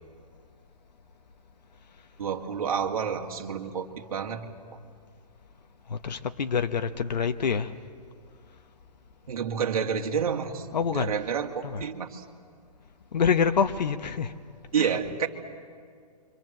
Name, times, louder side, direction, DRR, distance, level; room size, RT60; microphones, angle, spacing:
voice 1, 2.2-4.5 9.3-12.2 14.7-15.3, right 7 dB, 60° right, 2.3 m, -29 dB
voice 2, 5.9-7.7 10.7-11.3 11.6-11.9 13.1-14.3 14.7-15.0, left 6 dB, 85° left, 1.1 m, -27 dB
29.0 x 25.0 x 7.6 m
hypercardioid pair, 170°, 21 cm